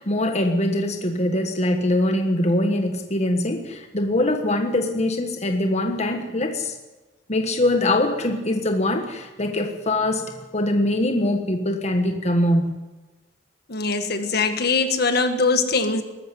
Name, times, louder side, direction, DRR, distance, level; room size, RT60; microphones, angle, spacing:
voice 1, 0.0-6.8 7.3-12.8, left 1 dB, 35° left, 5 dB, 1.4 m, -23 dB
voice 2, 13.7-16.0, left 4 dB, 55° left, 8 dB, 1.7 m, -22 dB
19.5 x 14.5 x 9.3 m, 1.2 s
head